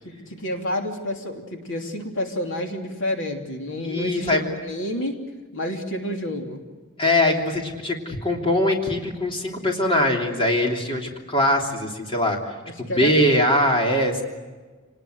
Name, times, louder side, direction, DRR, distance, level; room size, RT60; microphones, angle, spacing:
voice 1, 0.0-5.2 5.5-6.6 12.9-13.2, left 1 dB, 60° left, 3 dB, 3.0 m, -29 dB
voice 2, 3.8-4.4 7.0-12.4 12.8-14.2, left 1 dB, 25° left, 1 dB, 3.2 m, -22 dB
28.5 x 19.5 x 7.9 m, 1.4 s
head